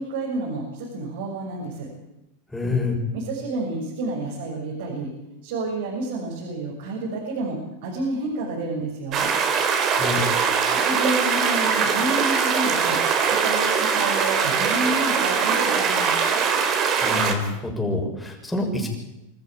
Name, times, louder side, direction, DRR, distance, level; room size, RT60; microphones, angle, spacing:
voice 1, 0.0-1.9 3.1-5.1 5.4-9.3 10.8-13.0 13.3-16.1, right 2 dB, 70° right, -1 dB, 7.0 m, -29 dB
voice 2, 2.5-3.0 9.9-10.2 17.0-18.9, left 3 dB, 5° left, 1 dB, 6.6 m, -27 dB
sound 1, 9.1-17.3, right 6 dB, 35° right, 4.3 m, -22 dB
26.0 x 14.0 x 9.1 m, 0.93 s
supercardioid pair, 135°, 0 cm